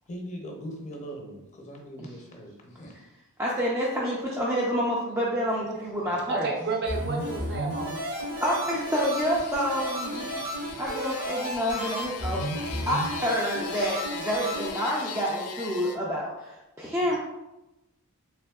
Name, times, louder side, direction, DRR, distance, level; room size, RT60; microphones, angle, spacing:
voice 1, 0.1-3.0, equal, 35° left, 1 dB, 0.6 m, -40 dB
voice 2, 3.4-6.5 8.4-10.3 10.8-12.4 12.9-17.2, equal, 10° right, -5 dB, 0.3 m, -28 dB
voice 3, 6.3-8.0 10.5-10.7, right 3 dB, 50° right, 0 dB, 0.6 m, -31 dB
sound 1, 6.9-14.7, equal, 80° right, 1.5 m, -33 dB
sound 2, 8.1-16.0, left 6 dB, 75° left, 0.4 m, -40 dB
3.4 x 3.0 x 2.2 m, 0.98 s
head